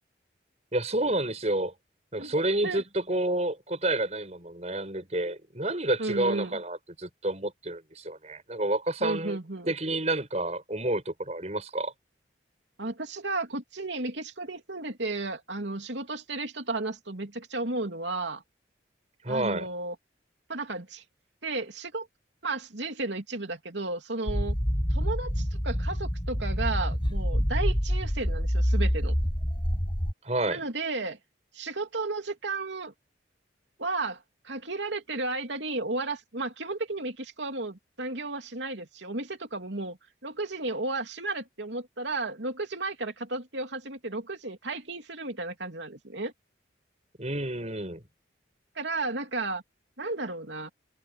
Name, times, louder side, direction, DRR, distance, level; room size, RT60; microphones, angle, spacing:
voice 1, 0.7-1.7 2.1-9.4 9.7-11.9 19.2-19.7 30.2-30.6 47.2-48.0, right 1 dB, 35° right, 7.9 m, -29 dB
voice 2, 6.0-6.6 9.0-9.7 12.8-18.4 19.3-20.0 20.5-21.0 21.4-22.1 22.4-24.6 24.9-29.1 30.5-31.2 31.5-32.9 33.8-46.3 48.7-49.6 50.0-50.7, right 3 dB, 75° right, 2.9 m, -33 dB
sound 1, 24.3-30.1, equal, 25° left, 6.2 m, -27 dB
head